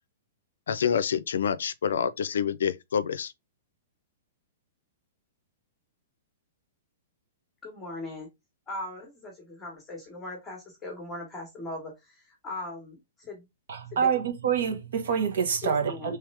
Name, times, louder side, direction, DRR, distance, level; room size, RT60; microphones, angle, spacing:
voice 1, 0.7-3.3, left 7 dB, 80° left, 0.4 m, -27 dB
voice 2, 7.6-8.3 8.7-13.5 13.9-14.2 15.6-16.2, left 2 dB, 10° left, 1.0 m, -39 dB
voice 3, 13.7-16.2, right 7 dB, 60° right, 1.0 m, -27 dB
3.5 x 3.2 x 3.2 m
hypercardioid pair, 175°, 0 cm